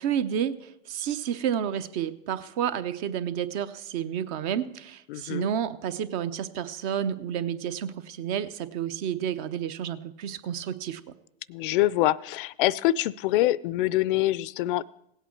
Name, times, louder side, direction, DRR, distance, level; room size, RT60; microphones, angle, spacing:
voice 1, 0.0-11.0, right 9 dB, 55° right, 12 dB, 0.8 m, -30 dB
voice 2, 5.1-5.5 11.5-14.8, left 15 dB, 65° left, 22 dB, 0.4 m, -25 dB
17.0 x 8.2 x 4.5 m, 0.80 s
hypercardioid pair, 110°, 29 cm